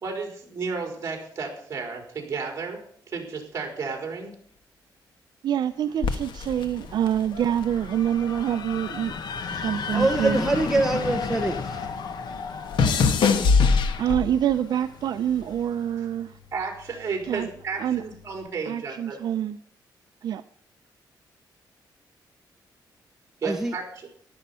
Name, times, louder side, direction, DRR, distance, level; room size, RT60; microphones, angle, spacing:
voice 1, 0.0-4.3 16.5-19.2 23.4-24.1, right 4 dB, 35° right, 3 dB, 4.3 m, -33 dB
voice 2, 5.4-9.1 9.5-10.4 14.0-16.4 17.2-17.5 17.8-18.0 18.7-19.6 20.2-20.4, right 10 dB, 60° right, 9 dB, 0.6 m, -26 dB
sound 1, 6.0-8.5 8.8-11.5 11.7-14.5 15.3-15.6, left 5 dB, 85° left, 1.3 m, -24 dB
sound 2, 6.0-15.9, left 5 dB, 65° left, 1.2 m, -35 dB
voice 3, 9.9-11.8 23.4-23.7, right 2 dB, 5° right, 2 dB, 1.0 m, -24 dB
14.0 x 12.0 x 5.6 m, 0.62 s
wide cardioid pair, 180°, 8 cm